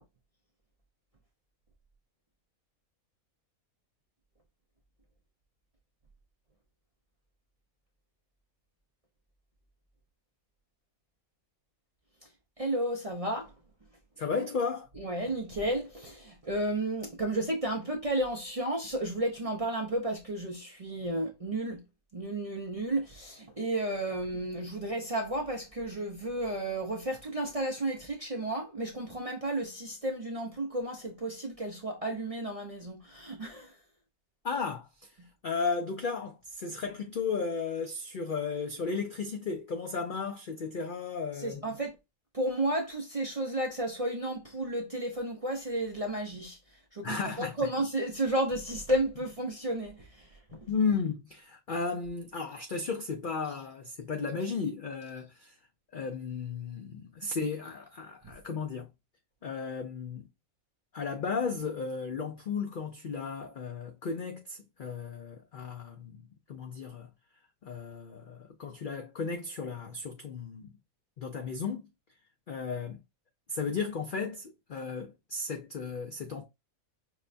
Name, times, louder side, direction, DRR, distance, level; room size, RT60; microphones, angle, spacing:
voice 1, 12.6-13.5 15.0-21.8 22.1-33.7 41.4-41.9 42.3-46.6 46.9-50.6, right 1 dB, 50° right, 0.4 m, -32 dB
voice 2, 14.2-14.9 34.4-35.1 35.4-41.6 47.0-47.6 50.7-55.6 55.9-58.9 59.4-60.3 60.9-66.2 66.5-67.1 67.6-70.7 71.2-71.9 72.5-73.0 73.5-76.4, left 5 dB, 90° left, 0.4 m, -34 dB
5.7 x 2.2 x 2.5 m
omnidirectional pair, 1.5 m